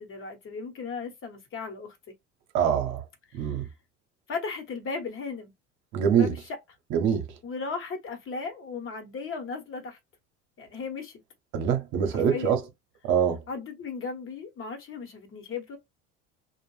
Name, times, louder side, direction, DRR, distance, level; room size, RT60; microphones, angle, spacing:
voice 1, 0.0-2.0 3.4-3.5 4.3-5.5 6.1-6.6 7.4-10.0 10.6-11.2 12.1-12.5 13.5-15.8, left 5 dB, 35° left, 1.1 m, -36 dB
voice 2, 2.5-3.0 3.3-3.6 5.9-6.3 6.9-7.3 11.5-12.6 13.1-13.4, right 8 dB, 50° right, 0.9 m, -24 dB
2.5 x 2.2 x 3.1 m
hypercardioid pair, 70°, 36 cm